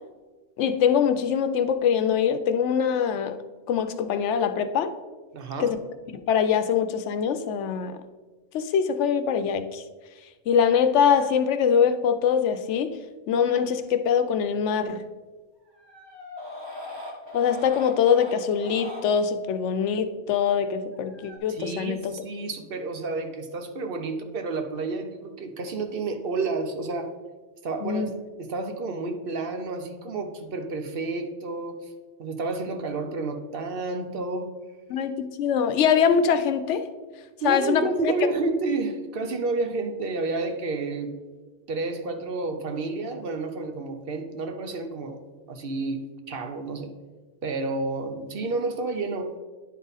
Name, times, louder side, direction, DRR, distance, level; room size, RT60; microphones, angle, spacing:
voice 1, 0.6-3.4 3.7-4.9 5.6-5.8 6.3-8.0 8.5-9.8 10.5-13.0 13.3-15.0 17.3-22.1 27.8-28.1 34.9-36.9 37.4-38.1, left 7 dB, 90° left, 10 dB, 0.9 m, -23 dB
voice 2, 5.3-5.7 21.5-27.1 27.6-28.0 28.4-31.8 32.2-34.5 37.4-41.2 41.7-45.2 45.5-46.0 46.3-46.9 47.4-49.3, right 3 dB, 60° right, 6 dB, 0.8 m, -30 dB
sound 1, 13.4-13.6 15.7-19.0 20.9-21.4, left 1 dB, 25° right, 1.3 m, -40 dB
10.0 x 3.7 x 4.0 m, 1.3 s
omnidirectional pair, 1.2 m